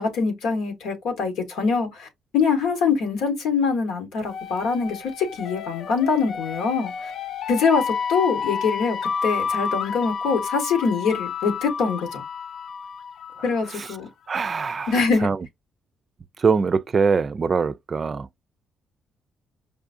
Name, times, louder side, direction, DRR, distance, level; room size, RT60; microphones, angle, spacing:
voice 1, 0.0-2.1 2.3-7.1 7.5-9.0 9.2-12.2 13.4-14.1 14.9-15.3, left 5 dB, 90° left, 1.3 m, -24 dB
sound 1, 4.3-13.9, left 6 dB, 65° left, 0.4 m, -30 dB
voice 2, 14.3-14.9 15.2-15.4 16.4-18.3, right 5 dB, 40° right, 0.3 m, -22 dB
4.9 x 2.4 x 2.5 m
cardioid pair, 90°, 0 cm